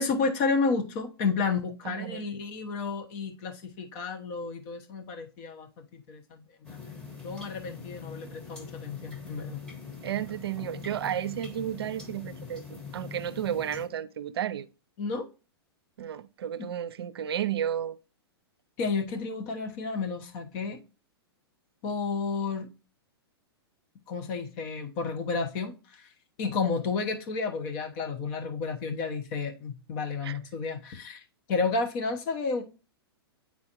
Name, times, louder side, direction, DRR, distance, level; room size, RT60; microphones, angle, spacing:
voice 1, 0.0-6.8 7.2-9.6 15.0-15.3 16.6-16.7 18.8-20.8 21.8-22.7 24.1-26.1 26.4-31.2 31.5-32.6, left 4 dB, 45° left, 1.1 m, -31 dB
voice 2, 1.8-2.3 10.0-14.7 16.0-18.0 30.2-30.4, right 10 dB, 70° right, 0.5 m, -32 dB
sound 1, 6.6-13.9, left 5 dB, 5° left, 1.2 m, -43 dB
8.6 x 4.0 x 3.0 m
hypercardioid pair, 115°, 13 cm